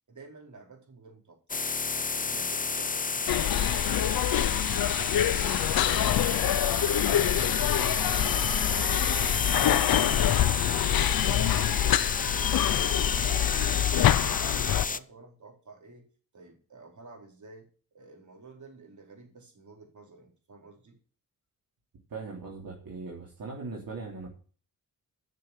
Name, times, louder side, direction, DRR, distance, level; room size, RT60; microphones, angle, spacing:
voice 1, 0.1-1.7 1.9-4.1 4.4-7.8 8.1-13.1 13.4-16.1 16.3-17.7 17.9-21.0, right 3 dB, 55° right, 1 dB, 4.7 m, -51 dB
sound 1, 1.5-15.0, left 4 dB, 25° left, 0.6 m, -31 dB
sound 2, 3.3-14.9, left 12 dB, 90° left, 0.6 m, -26 dB
voice 2, 22.1-24.3, right 4 dB, 75° right, -2 dB, 3.6 m, -39 dB
13.0 x 6.8 x 7.3 m, 0.39 s
wide cardioid pair, 110°, 35 cm